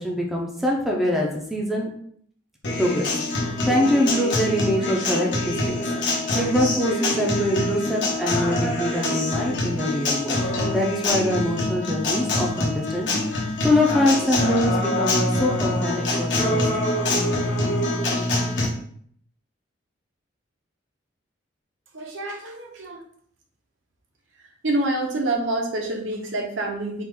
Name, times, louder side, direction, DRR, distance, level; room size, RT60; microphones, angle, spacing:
voice 1, 0.0-1.9 2.7-3.1 3.4-5.8 6.3-10.4 10.7-17.2, left 1 dB, ahead, -2 dB, 0.5 m, -24 dB
Acoustic guitar, 2.6-18.7, left 1 dB, 65° left, 1.0 m, -25 dB
voice 2, 21.9-23.0 24.6-27.0, right 2 dB, 75° right, 1 dB, 0.8 m, -27 dB
4.2 x 2.4 x 3.6 m, 0.63 s
head